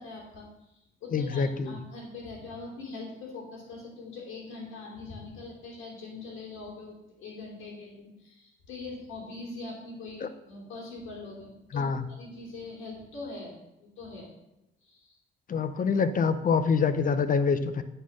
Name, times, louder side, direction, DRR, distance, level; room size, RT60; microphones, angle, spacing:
voice 1, 0.0-14.3 14.8-15.2, left 3 dB, 85° left, -3 dB, 2.7 m, -42 dB
voice 2, 1.1-1.8 10.2-10.3 11.7-12.1 15.5-17.8, left 5 dB, 45° left, 12 dB, 0.7 m, -26 dB
8.9 x 4.3 x 6.3 m, 0.90 s
cardioid pair, 90°, 20 cm